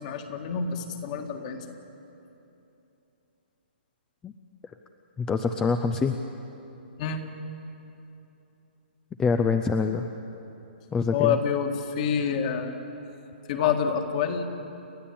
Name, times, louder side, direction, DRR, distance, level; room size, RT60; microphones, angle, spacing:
voice 1, 0.0-1.6 7.0-7.2 11.1-12.8 13.5-14.4, left 7 dB, 40° left, 5 dB, 2.0 m, -27 dB
voice 2, 5.2-6.2 9.2-10.1 10.9-11.4, left 5 dB, 10° left, 7 dB, 0.5 m, -25 dB
30.0 x 11.5 x 8.8 m, 2.9 s
hypercardioid pair, 155°, 6 cm